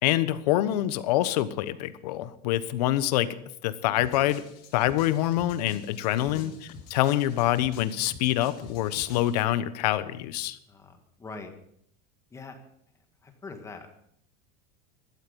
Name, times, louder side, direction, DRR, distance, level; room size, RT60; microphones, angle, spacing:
voice 1, 0.0-3.3 3.6-4.4 4.7-6.5 6.9-10.6, left 14 dB, 90° left, 14 dB, 1.1 m, -25 dB
sound 1, 4.0-9.4, left 5 dB, 70° left, 4.8 m, -48 dB
voice 2, 6.2-6.5 10.7-11.5 12.3-12.6 13.2-13.9, left 3 dB, 15° left, 5 dB, 1.8 m, -43 dB
15.5 x 12.5 x 5.4 m, 0.71 s
cardioid pair, 160°, 20 cm